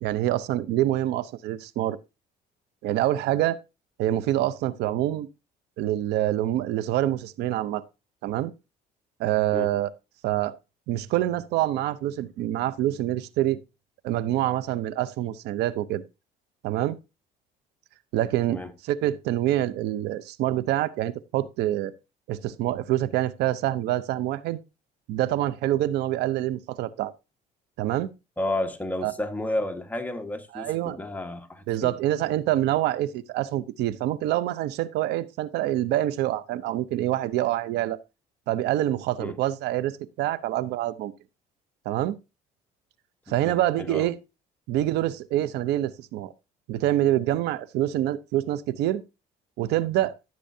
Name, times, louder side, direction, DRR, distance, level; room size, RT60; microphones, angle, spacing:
voice 1, 0.0-2.0 2.8-3.6 4.0-5.3 5.8-7.8 8.2-8.5 9.2-9.9 10.2-10.5 10.9-13.6 14.0-16.0 16.6-17.0 18.1-21.9 22.3-24.6 25.1-27.1 27.8-28.1 29.0-29.1 30.5-31.0 31.7-38.0 38.5-41.1 41.9-42.2 43.3-44.1 44.7-46.3 46.7-49.0 49.6-50.1, right 13 dB, 85° right, 0.7 m, -26 dB
voice 2, 28.4-31.9 39.2-39.4 43.3-44.1, left 1 dB, 10° left, 1.4 m, -32 dB
13.5 x 7.7 x 2.7 m
cardioid pair, 110°, 17 cm